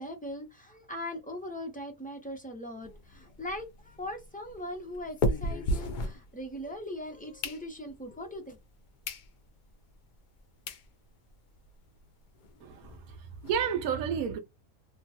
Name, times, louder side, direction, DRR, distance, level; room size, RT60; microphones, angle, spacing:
voice 1, 0.0-8.6, left 1 dB, 10° left, 0.5 m, -40 dB
sound 1, 2.8-6.8 7.2-8.1 8.6-8.7 9.0-9.3 9.7-9.8 10.4-10.5 10.7-10.9 11.3-11.4 11.6-11.7 12.0-12.1 12.4-13.5, left 1 dB, 90° left, 0.4 m, -35 dB
voice 2, 12.6-14.4, right 7 dB, 85° right, 1.1 m, -31 dB
2.9 x 2.2 x 2.7 m
omnidirectional pair, 1.5 m